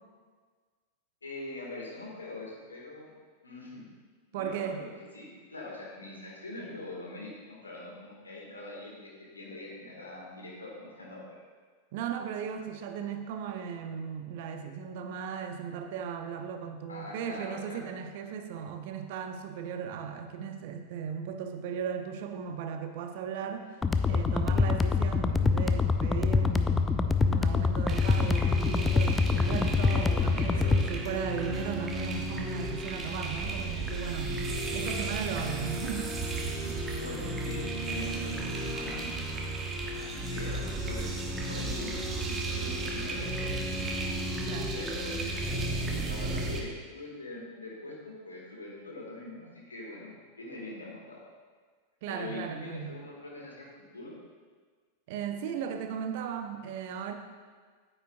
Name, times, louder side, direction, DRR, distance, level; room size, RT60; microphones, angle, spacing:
voice 1, 1.2-3.1 3.4-3.8 4.3-4.9 5.1-11.4 16.9-17.8 30.2-31.5 36.6-39.1 39.9-41.1 41.5-43.8 44.7-51.3 52.1-53.7 53.9-54.1, left 2 dB, 75° left, -3 dB, 2.1 m, -43 dB
voice 2, 4.3-4.8 11.9-23.7 24.1-26.9 27.2-34.4 34.7-36.1 44.4-44.7 52.0-53.0 55.1-57.1, right 7 dB, 50° right, 6 dB, 0.6 m, -37 dB
sound 1, 23.8-30.8, left 4 dB, 15° left, 0.4 m, -25 dB
sound 2, 27.9-46.6, right 2 dB, 20° right, 1.0 m, -34 dB
9.1 x 8.6 x 2.5 m, 1.5 s
figure-of-eight pair, 90°, 0 cm